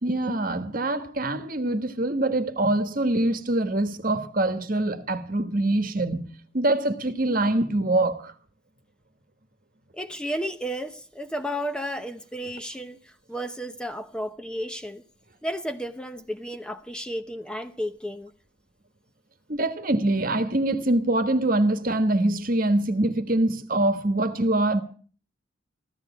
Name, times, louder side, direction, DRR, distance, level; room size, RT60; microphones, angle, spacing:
voice 1, 0.0-8.3 19.5-24.8, right 1 dB, 45° right, 1.3 m, -24 dB
voice 2, 9.9-15.0 15.4-18.3, equal, 5° left, 0.8 m, -33 dB
15.0 x 13.0 x 7.1 m
head